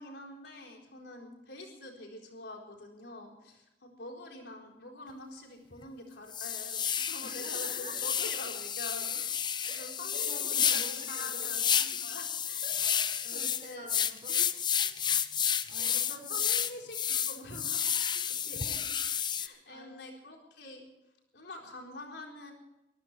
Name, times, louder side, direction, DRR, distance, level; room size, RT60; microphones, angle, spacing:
voice 1, 0.0-12.6 13.2-13.9 15.7-19.0 19.4-20.8 21.3-22.5, left 1 dB, 70° left, 1 dB, 4.2 m, -46 dB
sound 1, 5.1-5.2 5.7-5.8 6.3-19.5, left 8 dB, 25° left, 0.6 m, -31 dB
voice 2, 7.2-8.1 9.7-11.6 12.6-14.5 14.8-15.0 15.7-16.4 18.5-18.6 19.4-20.0, right 1 dB, 35° right, 1 dB, 6.0 m, -48 dB
24.5 x 14.0 x 3.4 m, 0.92 s
head